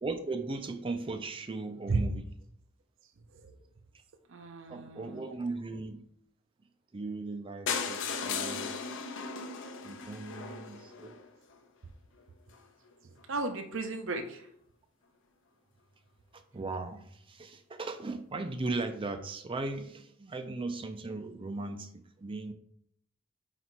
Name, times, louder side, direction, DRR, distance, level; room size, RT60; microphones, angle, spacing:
voice 1, 0.0-2.2 4.7-6.0 6.9-8.8 9.8-11.2 16.3-22.5, right 3 dB, 25° right, 7 dB, 0.4 m, -37 dB
voice 2, 3.2-3.6 4.3-5.3 13.0-14.5, right 3 dB, 60° right, 6 dB, 0.6 m, -35 dB
sound 1, 7.7-11.6 12.2-12.3 12.5-12.6 12.9-13.0 13.2-13.3, left 5 dB, 60° left, 0.7 m, -36 dB
5.2 x 4.1 x 4.5 m, 0.68 s
head